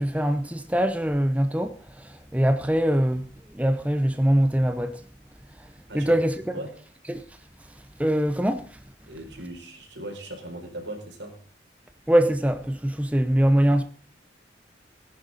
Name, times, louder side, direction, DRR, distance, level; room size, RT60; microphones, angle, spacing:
voice 1, 0.0-5.0 5.6-6.6 7.1-7.2 7.6-8.8 12.1-13.8, equal, 10° right, 0.7 m, -23 dB
voice 2, 9.1-11.4 13.3-13.4, right 1 dB, 80° right, 4.5 m, -38 dB
18.5 x 10.5 x 4.1 m
head